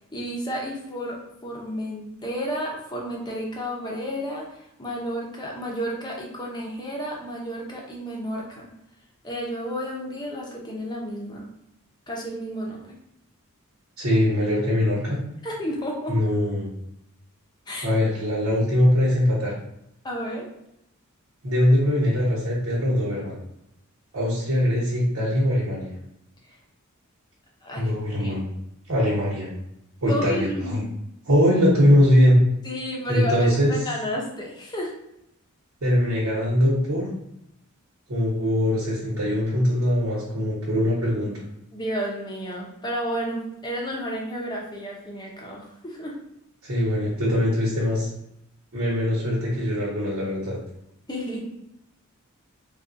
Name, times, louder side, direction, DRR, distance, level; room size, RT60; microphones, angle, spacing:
voice 1, 0.1-8.7 9.2-11.4 12.1-13.0 15.4-16.2 17.7-17.9 20.0-20.5 27.6-28.3 30.1-30.9 32.6-34.9 41.7-46.2 51.1-51.5, equal, 20° left, -1 dB, 0.6 m, -31 dB
voice 2, 14.0-15.2 16.1-16.7 17.8-19.5 21.4-23.3 24.1-25.9 27.7-28.5 28.9-29.5 30.0-30.8 31.3-32.4 33.1-33.7 35.8-37.1 38.1-41.3 46.6-48.1 48.7-50.6, left 1 dB, 85° right, -7 dB, 1.1 m, -22 dB
3.6 x 2.3 x 2.6 m, 0.81 s
head